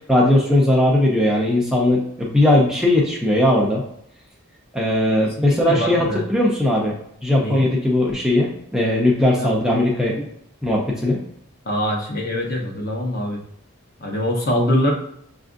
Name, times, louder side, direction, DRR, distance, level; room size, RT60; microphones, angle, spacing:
voice 1, 0.1-3.8 4.7-6.9 7.2-10.1 10.6-11.2, left 1 dB, 5° right, -3 dB, 0.5 m, -18 dB
voice 2, 5.5-6.2 7.4-7.6 9.4-9.5 11.7-13.4 14.0-14.9, left 1 dB, 45° left, 0 dB, 0.8 m, -23 dB
5.9 x 2.5 x 2.5 m, 0.72 s
head